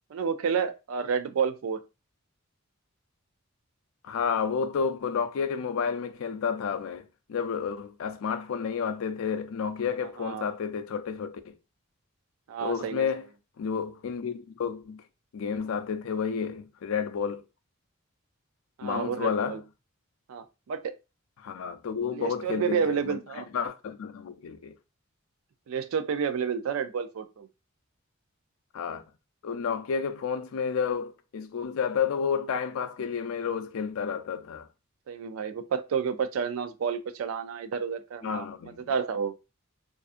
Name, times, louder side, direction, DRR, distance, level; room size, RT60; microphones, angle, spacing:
voice 1, 0.1-1.8 10.2-10.5 12.5-13.1 18.8-19.6 20.3-20.9 22.1-23.5 25.7-27.5 35.1-38.4 38.9-39.3, right 6 dB, 75° right, 0.3 m, -30 dB
voice 2, 4.0-11.5 12.6-13.3 13.6-15.0 15.3-17.4 18.8-19.6 21.4-24.7 28.7-29.0 29.4-34.7 38.2-38.9, left 6 dB, 75° left, 0.4 m, -31 dB
2.6 x 2.3 x 2.4 m
head